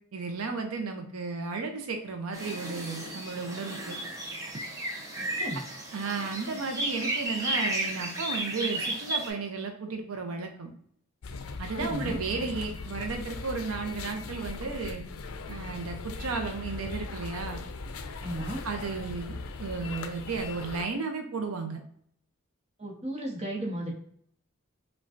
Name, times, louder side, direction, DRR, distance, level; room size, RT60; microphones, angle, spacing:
voice 1, 0.1-4.0 5.9-10.7 11.6-15.0 15.5-17.6 18.6-21.8, right 4 dB, 85° right, 4 dB, 0.6 m, -34 dB
sound 1, 2.3-9.3, right 1 dB, 15° right, 0.7 m, -33 dB
voice 2, 5.2-5.6 11.8-12.2 18.2-18.6 22.8-23.9, right 1 dB, 30° right, -2 dB, 0.9 m, -34 dB
sound 2, 11.2-20.8, left 4 dB, 85° left, 0.4 m, -39 dB
5.0 x 2.3 x 2.5 m, 0.64 s
head